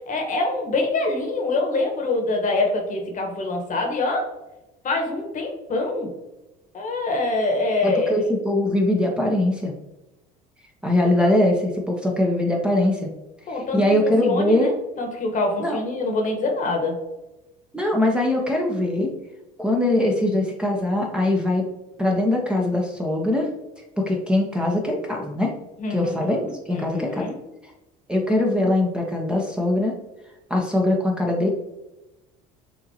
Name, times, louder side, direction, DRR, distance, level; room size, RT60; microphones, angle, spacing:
voice 1, 0.1-4.3 4.8-6.1 6.7-8.2 13.5-14.7 15.0-17.0 25.8-26.1 26.7-27.3, left 2 dB, 45° left, 2 dB, 1.3 m, -25 dB
voice 2, 7.8-9.7 10.8-13.1 13.5-14.7 15.6-15.8 17.7-19.1 19.6-21.7 22.0-23.5 24.0-25.5 25.9-27.3 28.1-29.9 30.5-31.5, left 1 dB, 5° right, -1 dB, 1.0 m, -22 dB
6.4 x 2.8 x 2.9 m, 0.99 s
hypercardioid pair, 75°, 19 cm